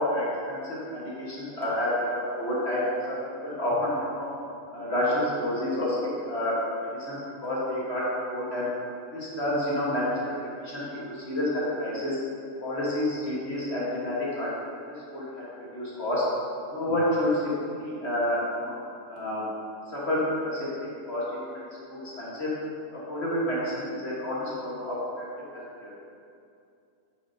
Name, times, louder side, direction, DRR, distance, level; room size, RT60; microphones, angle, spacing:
voice 1, 0.1-4.3 4.7-6.0 6.2-6.5 6.8-8.7 9.1-10.1 10.6-12.2 12.6-14.5 15.1-15.5 15.7-16.3 16.7-18.8 19.1-19.4 19.9-21.2 21.9-22.5 23.1-25.2 25.5-25.9, left 1 dB, 45° left, -7 dB, 1.8 m, -29 dB
8.6 x 6.9 x 2.8 m, 2.5 s
omnidirectional pair, 1.5 m